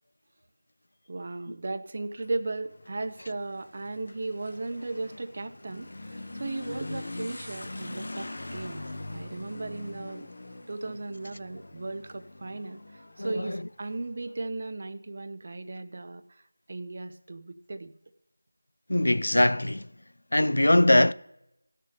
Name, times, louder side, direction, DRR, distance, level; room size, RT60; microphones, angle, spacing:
voice 1, 1.1-8.8 9.1-10.3 10.7-12.8 13.2-16.2 16.7-17.9, right 2 dB, 40° right, 0.6 m, -36 dB
Motorcycle / Accelerating revving vroom, 2.0-14.4, left 2 dB, 55° left, 1.0 m, -42 dB
voice 2, 13.2-13.7 18.9-19.9 20.3-21.1, left 1 dB, 70° left, 0.4 m, -22 dB
16.5 x 6.7 x 5.0 m
figure-of-eight pair, 170°, 0 cm